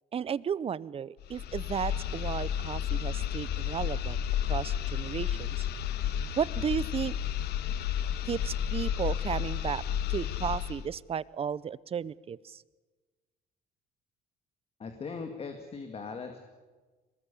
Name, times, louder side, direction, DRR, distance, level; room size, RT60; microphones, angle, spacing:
voice 1, 0.1-4.2 4.5-5.7 6.4-7.1 8.3-9.8 10.1-12.6, right 7 dB, 35° right, 21 dB, 0.6 m, -34 dB
sound 1, 1.2-10.9, left 10 dB, 75° left, 1.4 m, -32 dB
voice 2, 14.8-16.4, left 5 dB, 35° left, 5 dB, 2.2 m, -39 dB
23.0 x 20.0 x 8.4 m, 1.3 s
cardioid pair, 110°, 17 cm